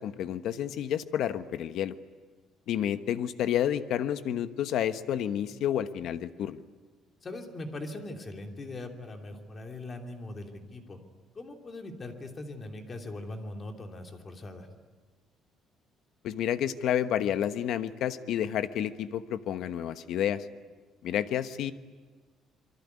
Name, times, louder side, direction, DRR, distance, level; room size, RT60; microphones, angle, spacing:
voice 1, 0.0-1.9 2.7-6.6 16.2-20.4 21.0-21.7, left 10 dB, 65° left, 11 dB, 1.1 m, -30 dB
voice 2, 7.2-11.0 11.3-14.7, left 2 dB, 25° left, 3 dB, 2.9 m, -41 dB
26.5 x 23.5 x 9.6 m, 1.4 s
cardioid pair, 160°, 0 cm